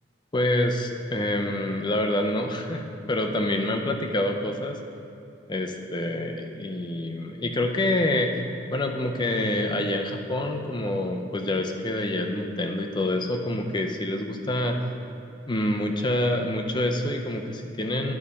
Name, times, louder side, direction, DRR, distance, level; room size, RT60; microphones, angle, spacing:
voice 1, 0.3-4.8 5.5-8.3 8.7-14.8 15.5-18.1, left 1 dB, 25° left, 3 dB, 0.6 m, -27 dB
10.5 x 4.2 x 5.1 m, 2.7 s
head